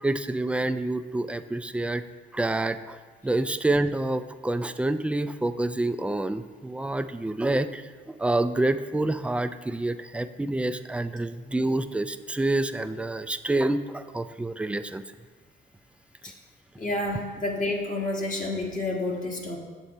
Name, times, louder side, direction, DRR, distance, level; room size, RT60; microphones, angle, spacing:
voice 1, 0.0-2.0 2.3-3.0 3.2-15.0, right 2 dB, 5° right, 10 dB, 0.3 m, -27 dB
voice 2, 16.8-19.6, left 2 dB, 40° left, 0 dB, 1.6 m, -29 dB
8.0 x 7.0 x 4.2 m, 1.5 s
cardioid pair, 90°, 20 cm